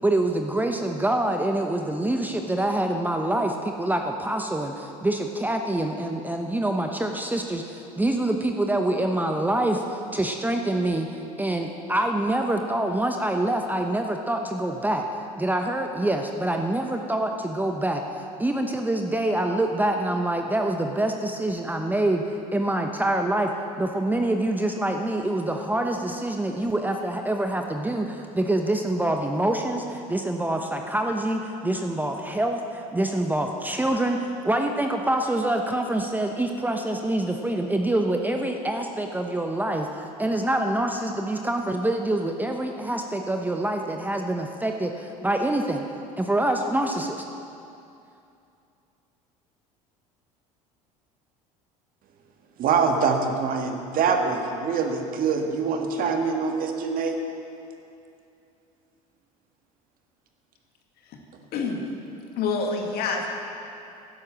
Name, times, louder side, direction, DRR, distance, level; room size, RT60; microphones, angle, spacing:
voice 1, 0.0-11.1 11.4-15.0 15.4-23.5 23.8-45.8 46.2-47.2, right 1 dB, 10° right, 4 dB, 1.0 m, -26 dB
voice 2, 52.6-57.2, right 5 dB, 50° right, 4 dB, 1.7 m, -24 dB
voice 3, 62.4-63.3, left 4 dB, 55° left, 2 dB, 2.1 m, -27 dB
11.5 x 10.5 x 7.5 m, 2.7 s
hypercardioid pair, 70°, 19 cm